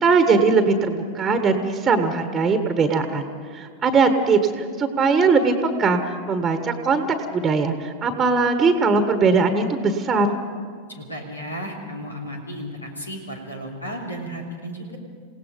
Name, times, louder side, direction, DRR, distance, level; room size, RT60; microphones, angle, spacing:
voice 1, 0.0-5.5 5.8-10.3, right 4 dB, 15° right, 7 dB, 1.5 m, -20 dB
voice 2, 10.9-15.0, equal, 80° left, 0 dB, 3.2 m, -34 dB
28.0 x 18.0 x 5.2 m, 2.1 s
figure-of-eight pair, 90°, 0 cm